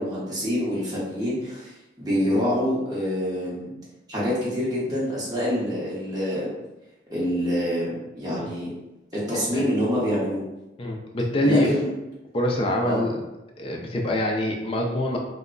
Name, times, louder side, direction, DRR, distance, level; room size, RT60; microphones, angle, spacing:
voice 1, 0.0-3.7 4.1-6.5 7.1-8.7 9.1-10.4 11.4-11.9 12.8-13.0, equal, 20° right, -8 dB, 0.9 m, -26 dB
voice 2, 10.8-11.7 12.3-13.2 13.6-15.2, left 1 dB, 30° left, 0 dB, 0.4 m, -24 dB
2.2 x 2.1 x 3.7 m, 0.97 s
head